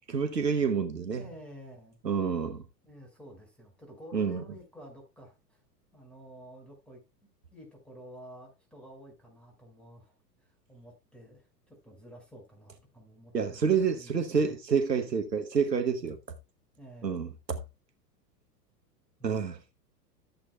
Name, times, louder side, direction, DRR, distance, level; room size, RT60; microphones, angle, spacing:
voice 1, 0.1-1.3 2.0-2.6 4.1-4.4 13.3-16.2 17.0-17.6 19.2-19.6, right 6 dB, 80° right, 1.2 m, -28 dB
voice 2, 1.2-2.0 2.8-5.6 5.9-7.0 7.5-10.1 10.4-14.6 16.8-17.2 19.2-19.6, equal, ahead, 5.0 m, -51 dB
14.0 x 7.9 x 2.3 m
figure-of-eight pair, 95°, 49 cm